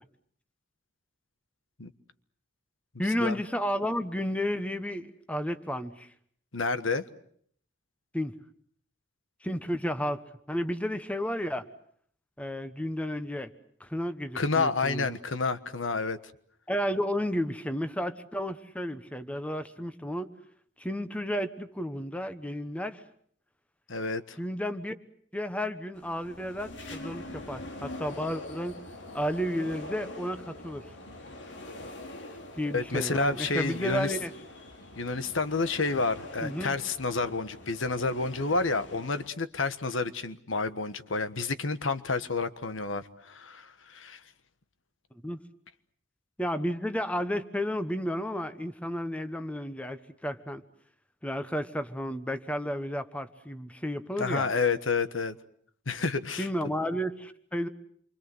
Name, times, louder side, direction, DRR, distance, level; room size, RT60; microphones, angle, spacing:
voice 1, 3.0-6.1 8.1-8.3 9.4-11.6 12.4-13.5 13.8-15.1 16.7-20.3 20.8-23.0 24.4-24.9 25.3-28.8 29.1-30.9 32.6-34.3 36.4-36.8 45.2-45.4 46.4-50.6 51.2-54.5 56.4-57.7, equal, 5° left, 10 dB, 1.1 m, -32 dB
voice 2, 6.5-7.0 14.3-16.2 23.9-24.4 32.7-34.1 35.0-44.2 54.2-55.4 55.9-56.5, left 3 dB, 85° left, 12 dB, 1.4 m, -29 dB
sound 1, 26.0-39.3, left 1 dB, 70° left, 3.0 m, -44 dB
28.0 x 25.0 x 7.8 m, 0.63 s
head